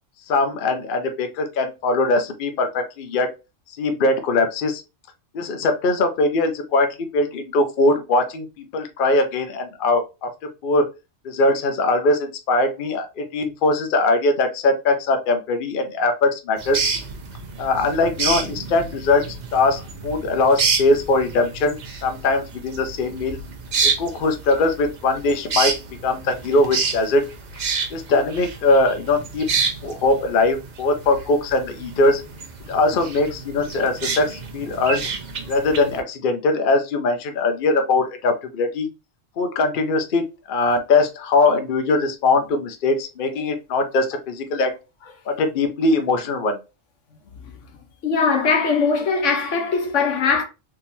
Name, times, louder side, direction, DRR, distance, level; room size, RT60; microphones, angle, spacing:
voice 1, 0.3-3.3 3.7-4.8 5.3-10.3 10.6-10.9 11.2-16.8 17.6-19.2 19.5-23.4 24.0-25.7 26.0-27.2 27.9-29.5 29.8-32.2 32.7-35.1 35.5-38.9 39.4-44.7 45.3-46.6, left 2 dB, 55° left, 0.7 m, -21 dB
sound 1, 16.6-36.0, right 5 dB, 45° right, 0.6 m, -29 dB
voice 2, 48.0-50.4, left 5 dB, 80° left, 1.3 m, -20 dB
3.7 x 2.8 x 2.7 m
omnidirectional pair, 1.2 m